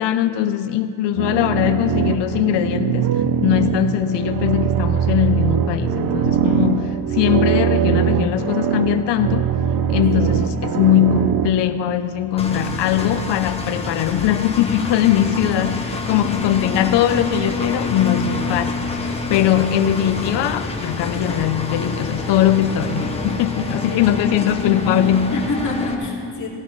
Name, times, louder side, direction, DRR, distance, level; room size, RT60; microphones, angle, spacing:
voice 1, 0.0-9.4 9.9-25.3, left 10 dB, 70° left, 9 dB, 0.7 m, -20 dB
sound 1, 1.2-11.5, right 8 dB, 50° right, 0.7 m, -21 dB
Engine, 12.4-25.9, left 3 dB, 15° left, 1.2 m, -27 dB
voice 2, 23.8-24.4 25.3-26.5, left 3 dB, 40° left, -4 dB, 2.6 m, -28 dB
16.0 x 16.0 x 3.2 m, 2.7 s
cardioid pair, 130°, 44 cm